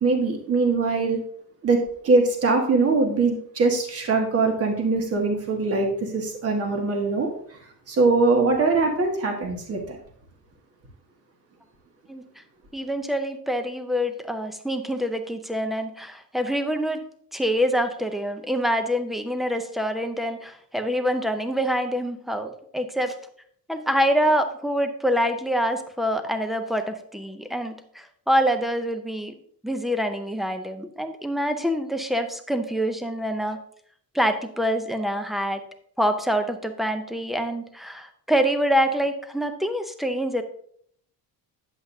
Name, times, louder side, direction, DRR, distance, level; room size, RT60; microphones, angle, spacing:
voice 1, 0.0-1.2 1.6-7.3 7.9-10.0, right 3 dB, 40° right, 2 dB, 1.6 m, -22 dB
voice 2, 12.7-17.0 17.3-23.1 23.7-29.3 29.6-33.6 34.1-35.6 36.0-40.4, equal, ahead, 7 dB, 0.5 m, -25 dB
9.6 x 7.8 x 2.7 m, 0.63 s
cardioid pair, 170°, 38 cm